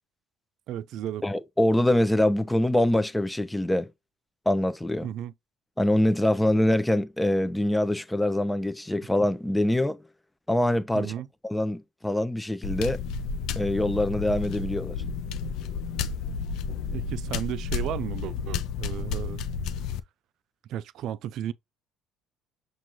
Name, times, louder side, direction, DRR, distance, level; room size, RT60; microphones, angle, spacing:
voice 1, 0.7-1.2 5.0-5.3 10.9-11.3 16.9-19.4 20.7-21.5, right 11 dB, 65° right, 0.3 m, -34 dB
voice 2, 1.2-3.9 4.5-5.1 5.8-10.0 10.5-11.1 11.4-13.0 13.6-15.0, left 1 dB, 10° left, 0.6 m, -24 dB
sound 1, 12.6-20.0, left 5 dB, 70° left, 0.4 m, -31 dB
5.9 x 2.6 x 2.8 m
hypercardioid pair, 65°, 0 cm